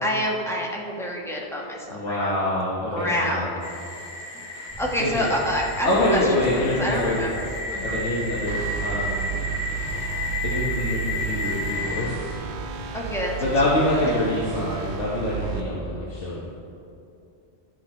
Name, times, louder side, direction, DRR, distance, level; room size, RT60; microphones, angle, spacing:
voice 1, 0.0-2.3 2.9-3.5 4.8-6.2 6.5-8.0 12.9-13.3, equal, ahead, -3 dB, 1.2 m, -27 dB
voice 2, 1.9-3.5 4.5-4.6 5.0-5.3 5.8-7.2 7.8-9.5 9.8-12.3 12.8-12.9 13.4-16.5, left 1 dB, 90° left, -7 dB, 1.5 m, -26 dB
sound 1, 3.6-12.1, left 2 dB, 50° left, 1.2 m, -32 dB
sound 2, 4.7-15.9, right 2 dB, 15° right, 2.2 m, -39 dB
sound 3, 8.5-15.6, right 9 dB, 75° right, 0.9 m, -33 dB
12.5 x 6.0 x 4.3 m, 2.7 s
omnidirectional pair, 1.2 m